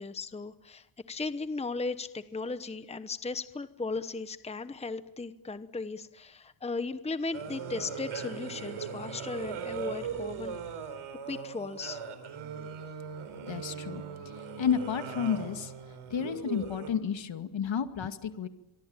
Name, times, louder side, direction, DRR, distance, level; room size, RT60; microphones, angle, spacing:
voice 1, 0.0-10.9 11.3-12.0, left 3 dB, 15° left, 12 dB, 1.0 m, -36 dB
sound 1, 7.3-16.9, right 6 dB, 75° right, 4.5 m, -39 dB
voice 2, 13.5-14.0 14.4-15.7 16.1-18.5, left 7 dB, 65° left, 8 dB, 2.3 m, -31 dB
25.5 x 24.0 x 8.9 m, 0.95 s
wide cardioid pair, 125°, 49 cm